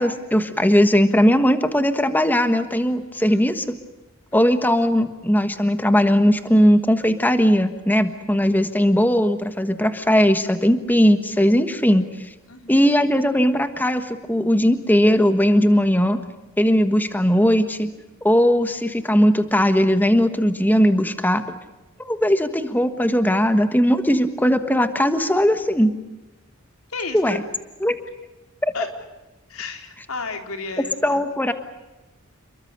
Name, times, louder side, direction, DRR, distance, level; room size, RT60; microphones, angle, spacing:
voice 1, 0.0-3.6 4.3-12.1 12.7-16.2 16.6-17.9 18.2-21.4 22.0-25.9 27.1-27.4 27.8-28.0 28.6-28.7 31.0-31.5, equal, 10° left, 9 dB, 1.4 m, -18 dB
voice 2, 4.3-4.6 12.5-12.9 26.9-27.4 28.7-28.9 29.5-31.5, left 3 dB, 90° left, 5 dB, 4.0 m, -33 dB
29.0 x 22.5 x 6.7 m, 1.1 s
head